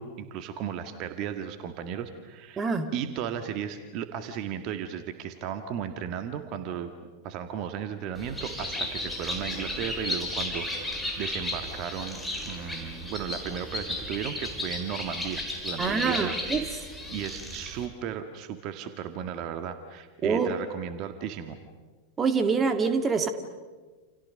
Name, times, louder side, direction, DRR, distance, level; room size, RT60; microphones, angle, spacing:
voice 1, 0.0-2.7 2.9-6.9 7.2-12.2 12.4-16.8 17.1-21.6, right 8 dB, 40° right, 8 dB, 1.8 m, -35 dB
voice 2, 2.6-2.9 15.8-16.6 20.2-20.5 22.2-23.3, right 5 dB, 20° right, 8 dB, 2.1 m, -25 dB
Bird, 8.1-17.9, left 1 dB, 5° left, 4.9 m, -34 dB
29.0 x 28.5 x 6.5 m, 1.4 s
figure-of-eight pair, 90°, 0 cm